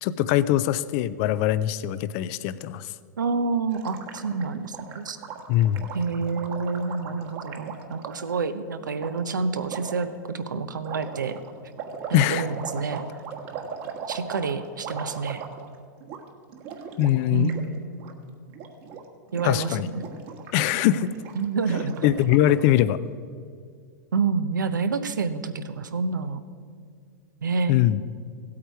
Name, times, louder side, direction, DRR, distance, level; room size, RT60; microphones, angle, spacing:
voice 1, 0.0-2.9 5.5-5.9 12.1-12.5 17.0-17.5 19.4-19.9 20.5-21.1 22.0-23.0 27.7-28.0, left 12 dB, 50° left, 15 dB, 0.4 m, -22 dB
voice 2, 3.2-5.2 5.9-11.4 12.1-13.0 14.1-15.4 17.3-17.8 19.3-20.0 21.4-22.0 24.1-26.4 27.4-27.7, right 4 dB, 90° right, 11 dB, 0.8 m, -28 dB
Gurgling, 3.7-8.3 9.0-9.1 9.7-10.0 10.8-15.8 16.0-16.2 16.5-17.7 17.9-18.1 18.5-19.0 19.3-22.7, right 6 dB, 50° right, 1.5 m, -38 dB
16.0 x 8.5 x 4.6 m, 2.2 s
hypercardioid pair, 110°, 10 cm